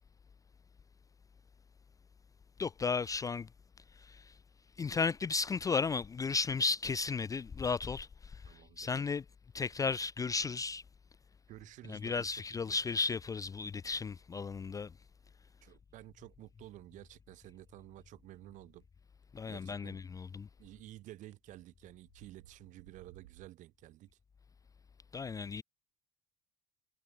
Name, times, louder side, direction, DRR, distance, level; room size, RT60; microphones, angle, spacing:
voice 1, 2.6-3.5 3.9-4.4 4.8-9.2 9.5-10.8 11.9-14.9 19.3-20.5 25.1-25.6, left 4 dB, 20° left, 0.6 m, -34 dB
voice 2, 8.4-8.9 11.5-12.6 15.6-18.9 19.4-20.0 20.6-24.2, right 15 dB, 55° right, 1.7 m, -53 dB
sound 1, 21.2-21.4 21.9-23.5, right 14 dB, 80° right, 5.8 m, -59 dB
hypercardioid pair, 65°, 16 cm